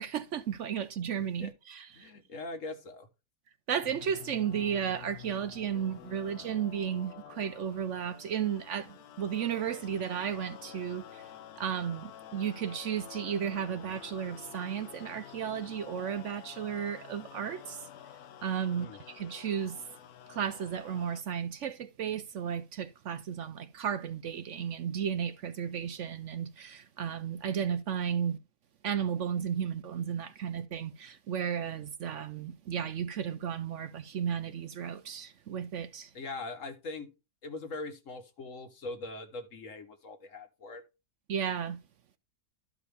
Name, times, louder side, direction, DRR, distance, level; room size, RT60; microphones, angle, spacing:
voice 1, 0.0-2.1 3.7-11.3 11.6-17.9 18.4-19.8 20.3-28.4 28.8-36.1 41.3-41.8, right 8 dB, 65° right, 0.8 m, -34 dB
voice 2, 2.0-3.1 18.7-19.0 36.1-37.1 37.4-40.8, left 3 dB, 55° left, 1.6 m, -41 dB
sound 1, 3.8-21.2, left 11 dB, 70° left, 1.1 m, -49 dB
13.0 x 4.8 x 3.4 m
omnidirectional pair, 1.7 m